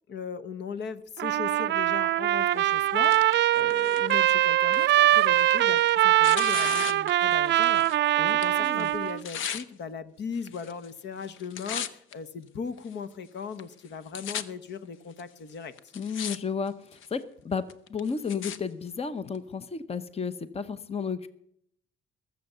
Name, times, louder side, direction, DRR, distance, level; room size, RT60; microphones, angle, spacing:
voice 1, 0.1-8.1 8.3-15.7, left 5 dB, 60° left, 13 dB, 1.2 m, -38 dB
Trumpet, 1.2-9.2, right 14 dB, 65° right, 0.5 m, -23 dB
Tearing, 2.6-8.0 8.3-9.6 10.4-10.9 11.2-12.1 12.8-12.9 13.6-13.7 13.9-14.4 15.2-15.3 15.8-16.4 16.7-17.1 17.7-18.6 19.4-19.5, left 8 dB, 80° left, 1.0 m, -37 dB
voice 2, 8.2-8.9 15.9-21.3, left 5 dB, 30° left, 13 dB, 1.0 m, -33 dB
20.5 x 7.9 x 6.8 m, 0.69 s
cardioid pair, 90°, 20 cm